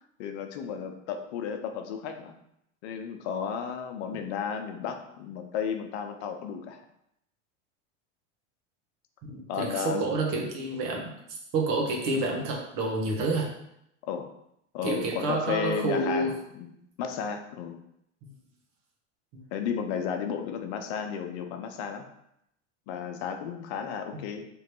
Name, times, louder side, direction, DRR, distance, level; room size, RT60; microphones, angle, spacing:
voice 1, 0.2-2.4 2.8-6.8 9.5-10.1 14.0-14.3 14.7-17.8 19.5-22.1 22.9-24.5, left 7 dB, 65° left, 6 dB, 0.7 m, -33 dB
voice 2, 9.2-11.1 11.5-13.5 14.8-16.3 18.2-18.3 19.3-19.4 24.1-24.2, right 2 dB, 60° right, 0 dB, 1.3 m, -29 dB
3.5 x 3.0 x 4.5 m, 0.78 s
hypercardioid pair, 90°, 37 cm